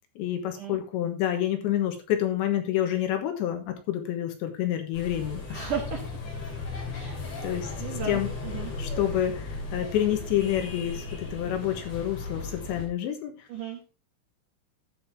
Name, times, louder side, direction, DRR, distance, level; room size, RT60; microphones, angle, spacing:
voice 1, 0.2-5.7 7.4-7.7 8.1-8.3 8.8-13.5, left 11 dB, 75° left, 6 dB, 3.3 m, -28 dB
sound 1, 4.9-12.9, left 3 dB, 40° left, 3.1 m, -36 dB
voice 2, 5.5-6.0 6.9-7.2 7.8-8.7 13.5-13.8, right 6 dB, 75° right, 2 dB, 1.8 m, -35 dB
12.0 x 7.4 x 3.5 m, 0.30 s
omnidirectional pair, 5.7 m